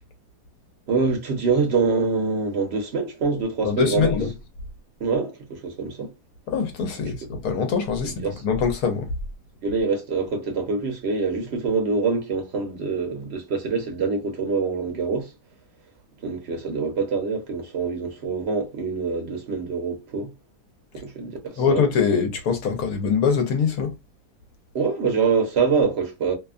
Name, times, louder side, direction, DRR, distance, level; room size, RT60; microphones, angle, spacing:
voice 1, 0.9-4.2 5.0-6.1 8.0-8.3 9.6-15.3 16.2-20.3 20.9-21.8 24.7-26.3, right 4 dB, 50° right, 0.9 m, -25 dB
voice 2, 3.6-4.3 6.5-9.1 21.6-23.9, left 6 dB, 70° left, 1.1 m, -23 dB
2.8 x 2.2 x 2.4 m
omnidirectional pair, 1.7 m